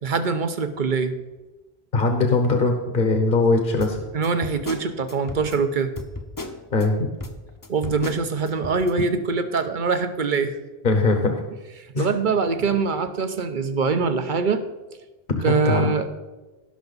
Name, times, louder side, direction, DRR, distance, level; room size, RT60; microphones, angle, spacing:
voice 1, 0.0-1.1 4.1-5.9 7.7-10.6 11.8-14.6 15.4-16.1, right 4 dB, 50° right, 9 dB, 0.9 m, -23 dB
voice 2, 1.9-4.0 6.7-7.1 10.8-11.4 11.9-12.1 15.3-15.9, left 3 dB, 55° left, 4 dB, 1.1 m, -21 dB
sound 1, 3.8-6.9 7.2-8.9, left 2 dB, 20° left, 0.7 m, -36 dB
17.5 x 5.8 x 4.0 m, 1.1 s
omnidirectional pair, 1.1 m